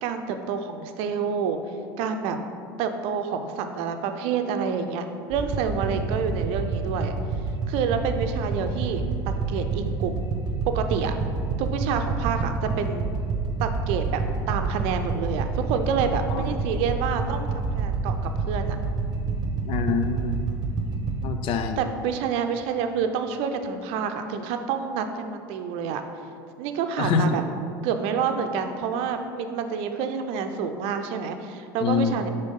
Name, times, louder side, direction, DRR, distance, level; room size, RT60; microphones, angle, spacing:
voice 1, 0.0-1.6 2.0-2.4 2.8-7.1 7.7-10.2 10.7-11.1 11.6-13.1 13.6-14.2 14.5-18.1 18.5-18.8 21.8-26.0 26.6-27.4 27.8-32.3, right 6 dB, 65° right, 7 dB, 0.5 m, -28 dB
sound 1, 5.3-21.2, right 4 dB, 40° right, 1.0 m, -28 dB
voice 2, 19.6-20.4 21.2-21.8 27.0-27.4 31.8-32.1, left 5 dB, 55° left, 7 dB, 0.6 m, -25 dB
5.3 x 4.0 x 5.3 m, 2.4 s
hypercardioid pair, 85°, 11 cm